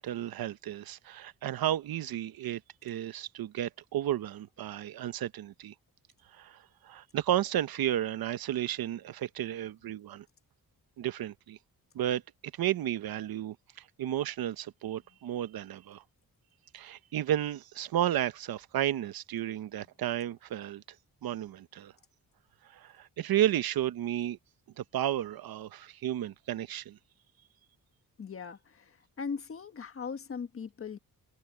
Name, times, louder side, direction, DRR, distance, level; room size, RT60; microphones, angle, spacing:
voice 1, 0.0-5.7 6.3-10.2 11.0-11.6 11.9-12.2 12.5-16.0 16.7-20.8 21.2-21.9 22.7-24.4 24.8-27.0, right 12 dB, 70° right, 0.9 m, -33 dB
voice 2, 28.2-31.0, left 6 dB, 35° left, 1.4 m, -39 dB
wide cardioid pair, 155°, 37 cm